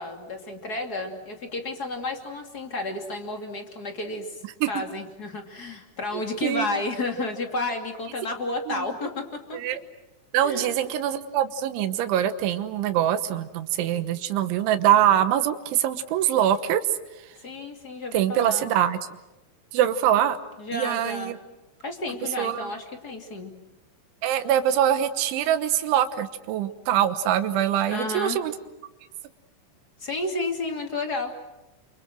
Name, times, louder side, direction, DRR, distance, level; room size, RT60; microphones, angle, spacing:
voice 1, 0.0-4.4 4.7-9.6 10.4-10.7 17.4-18.7 20.6-21.4 21.8-23.5 27.9-28.4 30.0-31.3, left 2 dB, 30° left, 4 dB, 2.2 m, -31 dB
voice 2, 6.1-6.7 8.7-8.9 9.5-9.8 10.3-16.8 18.1-19.0 19.7-20.4 20.7-21.4 22.4-22.7 24.2-28.5, right 11 dB, 85° right, 10 dB, 3.6 m, -23 dB
29.5 x 27.0 x 6.2 m, 1.0 s
omnidirectional pair, 5.3 m